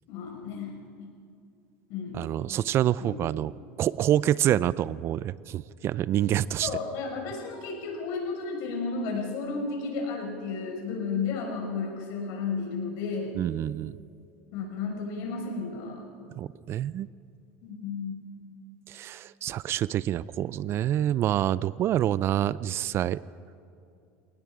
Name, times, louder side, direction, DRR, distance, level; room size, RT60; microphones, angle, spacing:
voice 1, 0.1-1.1 1.9-2.3 3.0-3.3 6.6-13.3 14.5-16.1 17.6-18.3, left 4 dB, 65° left, 1 dB, 5.7 m, -33 dB
voice 2, 2.1-3.5 3.8-6.7 13.4-13.9 16.4-17.1 18.9-23.2, right 12 dB, 40° right, 19 dB, 0.4 m, -27 dB
28.0 x 18.5 x 5.0 m, 2.4 s
supercardioid pair, 120°, 6 cm